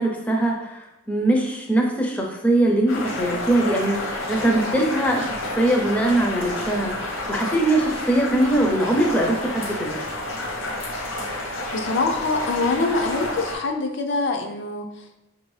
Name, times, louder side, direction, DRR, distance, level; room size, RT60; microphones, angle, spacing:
voice 1, 0.0-4.0 4.3-6.9 7.3-10.0, right 1 dB, 5° left, 0 dB, 0.5 m, -21 dB
sound 1, 2.9-13.5, left 1 dB, 75° left, 0.9 m, -30 dB
voice 2, 11.7-15.2, left 3 dB, 60° left, 3 dB, 0.4 m, -25 dB
4.9 x 2.6 x 3.2 m, 0.94 s
head